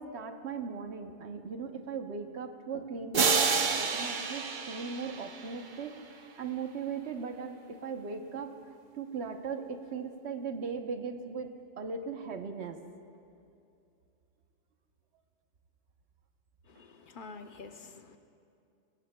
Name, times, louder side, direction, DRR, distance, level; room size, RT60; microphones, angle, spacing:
voice 1, 0.0-5.9 6.4-8.5 8.9-11.5 11.8-12.8, right 5 dB, 65° right, 5 dB, 1.2 m, -38 dB
sound 1, 3.1-5.8, right 5 dB, 45° right, 0.8 m, -29 dB
voice 2, 16.7-18.2, left 4 dB, 50° left, 7 dB, 0.8 m, -48 dB
20.5 x 18.5 x 2.2 m, 2.6 s
omnidirectional pair, 1.2 m